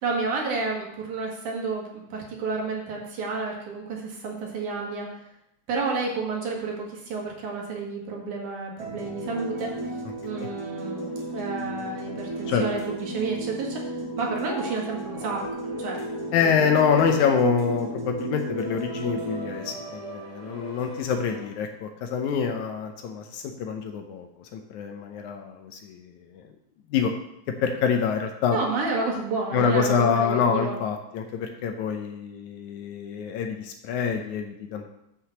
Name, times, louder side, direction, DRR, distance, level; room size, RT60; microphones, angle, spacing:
voice 1, 0.0-5.1 5.7-9.7 10.2-13.8 14.2-15.5 15.8-16.0 16.4-16.7 28.5-30.8, right 3 dB, 85° right, -1 dB, 3.4 m, -30 dB
sound 1, 8.8-21.4, right 1 dB, 35° right, 2.6 m, -34 dB
voice 2, 16.3-26.0 26.3-26.5 26.9-27.1 27.6-28.6 29.5-34.9, left 6 dB, 80° left, 4 dB, 2.2 m, -26 dB
7.9 x 5.9 x 7.1 m, 0.81 s
omnidirectional pair, 3.4 m